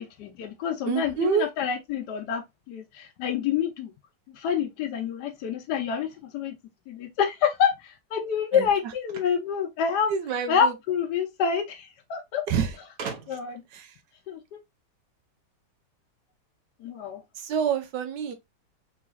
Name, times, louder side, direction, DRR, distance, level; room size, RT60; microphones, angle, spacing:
voice 1, 0.0-2.4 2.7-3.9 4.4-6.1 6.3-6.5 6.9-10.1 10.5-12.4 13.3-13.6 14.3-14.6 16.8-17.2, left 7 dB, 75° left, 1.2 m, -27 dB
voice 2, 0.9-1.5 8.5-8.7 10.1-10.7 12.5-12.7 13.7-13.9 17.4-18.3, right 7 dB, 75° right, 1.4 m, -27 dB
sound 1, 9.1-10.5 11.6-11.7 11.9-12.0 13.0-13.6, right 5 dB, 60° right, 1.3 m, -40 dB
4.1 x 3.8 x 2.3 m
omnidirectional pair, 1.9 m